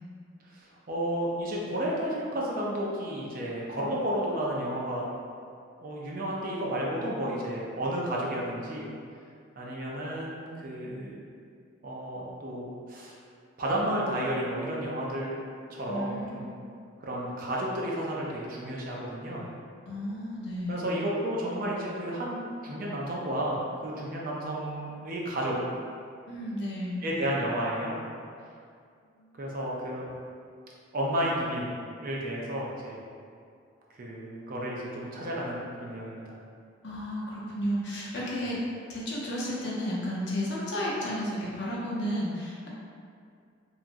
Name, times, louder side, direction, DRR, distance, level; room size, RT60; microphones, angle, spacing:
voice 1, 0.4-5.0 5.8-8.9 9.6-11.2 11.8-13.2 13.6-15.3 15.7-16.5 17.0-19.4 20.7-25.6 27.0-28.0 29.4-30.0 30.9-31.7 32.0-33.0 33.9-36.4, right 1 dB, 45° right, -4 dB, 0.4 m, -32 dB
voice 2, 15.9-16.7 19.9-20.9 26.2-27.0 29.1-29.3 36.8-38.6 38.9-42.7, equal, 60° left, -6 dB, 0.6 m, -33 dB
2.9 x 2.4 x 2.5 m, 2.3 s
head